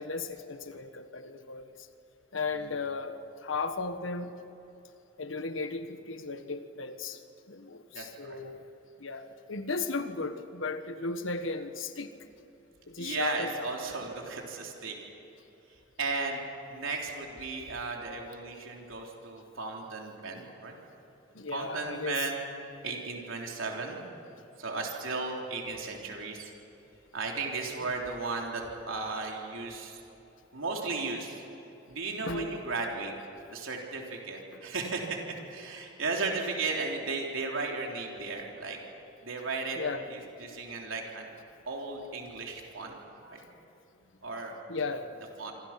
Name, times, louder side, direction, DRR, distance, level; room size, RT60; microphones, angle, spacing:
voice 1, 0.0-1.9 2.3-4.4 5.2-7.2 7.5-8.6 9.0-12.1 12.9-13.7 21.3-22.2 32.3-32.6 39.8-40.1 43.2-43.4 44.7-45.1, left 3 dB, 80° left, 9 dB, 1.5 m, -35 dB
voice 2, 7.9-8.4 13.0-15.0 15.7-16.4 16.7-20.8 21.5-22.5 22.8-24.0 24.6-26.5 27.1-30.0 30.5-31.4 31.9-33.1 33.5-35.2 35.4-38.8 39.2-39.8 40.1-41.3 41.7-42.9 43.3-43.4 44.2-44.5 45.2-45.5, right 3 dB, 85° right, 0 dB, 3.5 m, -35 dB
26.5 x 25.5 x 6.0 m, 3.0 s
head